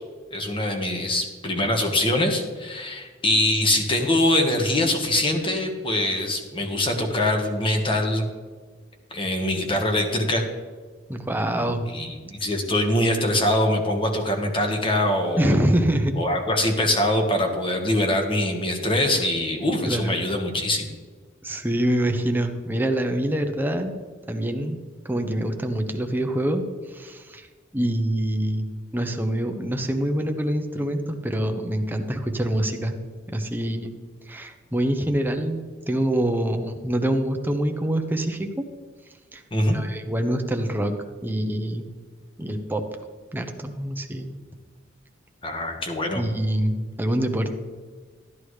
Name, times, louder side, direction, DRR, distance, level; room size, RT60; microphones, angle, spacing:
voice 1, 0.3-8.3 9.1-10.4 11.5-15.6 16.2-20.9 39.5-39.8 45.4-46.2, left 1 dB, 25° left, 3 dB, 1.4 m, -23 dB
voice 2, 11.1-11.9 15.4-16.1 19.1-19.2 19.9-20.2 21.4-23.9 24.3-24.8 25.0-27.5 27.7-33.0 33.3-33.9 34.3-38.7 39.3-39.4 39.7-40.9 41.2-41.9 42.4-42.8 43.3-44.4 46.2-47.5, right 1 dB, 10° right, 5 dB, 0.8 m, -25 dB
13.0 x 10.5 x 3.2 m, 1.5 s
head